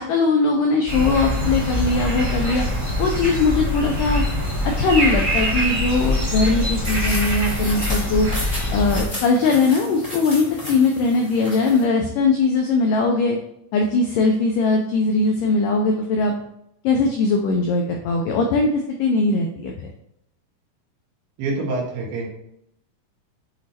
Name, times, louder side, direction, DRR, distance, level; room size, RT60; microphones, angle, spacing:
voice 1, 0.0-2.6 3.0-4.2 4.8-8.3 8.7-13.4 13.7-16.3 16.8-18.7 19.0-19.9, left 3 dB, 85° left, 2 dB, 1.9 m, -20 dB
sound 1, 0.9-9.1, left 1 dB, 10° right, 1.5 m, -23 dB
sound 2, 6.8-11.8, left 1 dB, 15° left, 1.6 m, -33 dB
voice 2, 21.4-22.3, right 3 dB, 75° right, -2 dB, 3.5 m, -26 dB
8.3 x 3.1 x 4.2 m, 0.76 s
omnidirectional pair, 4.6 m